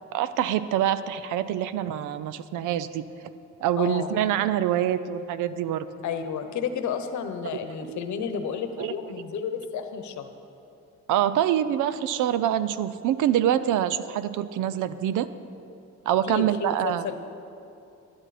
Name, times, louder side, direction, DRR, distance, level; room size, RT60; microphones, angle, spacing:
voice 1, 0.1-3.0 3.6-5.9 7.8-8.0 8.8-8.9 11.1-15.3 16.1-17.1, right 11 dB, 85° right, 14 dB, 0.5 m, -25 dB
voice 2, 3.8-4.1 6.0-10.3 16.2-17.2, left 7 dB, 70° left, 8 dB, 1.0 m, -31 dB
11.5 x 11.5 x 4.2 m, 2.7 s
cardioid pair, 90°, 30 cm